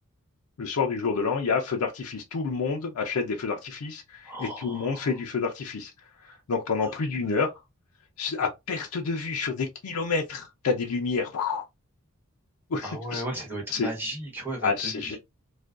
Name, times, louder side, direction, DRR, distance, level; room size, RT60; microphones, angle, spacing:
voice 1, 0.6-5.9 6.2-7.5 8.2-11.6 12.7-13.2 13.7-13.9 14.6-15.2, left 4 dB, 85° left, 0.5 m, -28 dB
voice 2, 4.2-5.1 12.8-15.2, right 1 dB, 10° right, 1.1 m, -35 dB
2.4 x 2.2 x 2.3 m
head